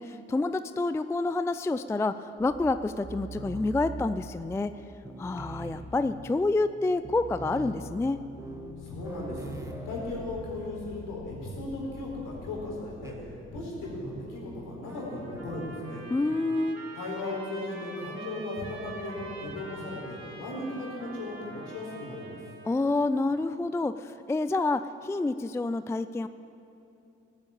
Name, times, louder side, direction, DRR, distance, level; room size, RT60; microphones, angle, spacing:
voice 1, 0.0-4.8 5.2-8.2 16.1-16.8 22.7-26.3, left 2 dB, 10° left, 13 dB, 0.4 m, -28 dB
sound 1, 2.4-4.8 5.0-6.4 6.7-6.8 7.0-11.1 11.4-11.7 13.0-13.3 14.0-14.5 15.4-15.8, right 2 dB, 10° right, 1.7 m, -43 dB
sound 2, 8.3-16.8, left 6 dB, 35° left, 1.4 m, -48 dB
voice 2, 8.8-9.5 9.8-13.3 13.5-16.0 16.9-22.4, left 2 dB, 60° left, -2 dB, 4.2 m, -36 dB
Trumpet, 14.8-22.7, right 2 dB, 45° right, 3.4 m, -45 dB
18.0 x 9.0 x 8.4 m, 2.8 s
figure-of-eight pair, 40°, 35 cm